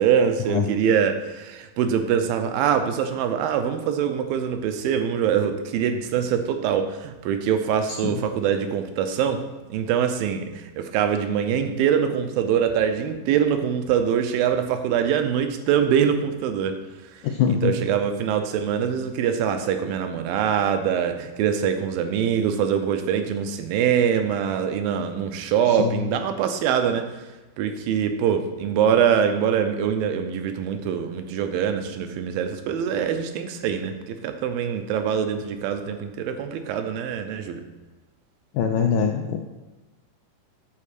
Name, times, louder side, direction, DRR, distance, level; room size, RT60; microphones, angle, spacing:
voice 1, 0.0-9.4 9.7-16.8 17.6-27.1 27.6-37.6, right 8 dB, 85° right, 7 dB, 2.5 m, -23 dB
voice 2, 17.2-17.7 25.7-26.1 38.5-39.4, left 7 dB, 85° left, 3 dB, 1.8 m, -23 dB
8.6 x 4.3 x 6.6 m, 1.1 s
omnidirectional pair, 4.1 m